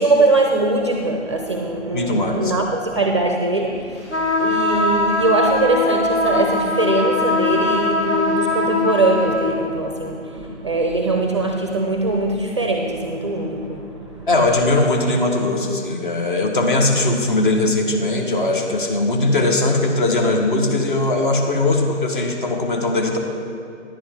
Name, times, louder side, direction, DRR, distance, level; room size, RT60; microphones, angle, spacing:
voice 1, 0.0-14.3, right 2 dB, 25° right, 2 dB, 0.5 m, -21 dB
voice 2, 1.9-2.5 14.3-23.2, left 2 dB, 45° left, 2 dB, 1.3 m, -19 dB
sound 1, 4.1-9.5, left 2 dB, 65° left, 2.1 m, -21 dB
10.5 x 10.0 x 3.6 m, 2.4 s
figure-of-eight pair, 135°, 36 cm